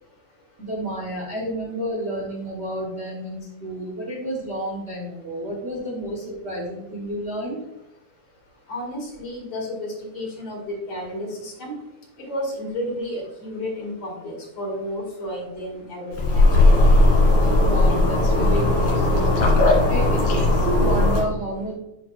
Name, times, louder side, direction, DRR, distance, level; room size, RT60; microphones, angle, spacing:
voice 1, 0.6-7.6 17.6-19.4 19.8-21.7, right 1 dB, 85° right, -3 dB, 0.6 m, -30 dB
voice 2, 8.7-11.7 12.2-16.5, left 1 dB, 55° left, -2 dB, 3.3 m, -32 dB
sound 1, 16.1-21.2, left 2 dB, 80° left, 3.8 m, -17 dB
11.0 x 4.9 x 2.5 m, 0.95 s
omnidirectional pair, 3.4 m